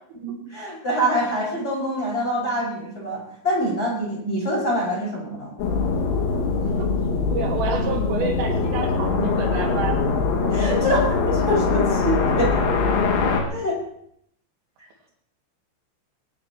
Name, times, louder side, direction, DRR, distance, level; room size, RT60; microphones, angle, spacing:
voice 1, 0.2-5.5 10.5-12.6 13.5-13.8, equal, 20° left, -3 dB, 6.5 m, -25 dB
sound 1, 5.6-13.4, left 4 dB, 75° left, 4.5 m, -22 dB
voice 2, 7.3-10.0 10.5-10.6, right 4 dB, 80° right, 0 dB, 5.0 m, -28 dB
22.0 x 18.5 x 3.1 m, 0.69 s
omnidirectional pair, 5.8 m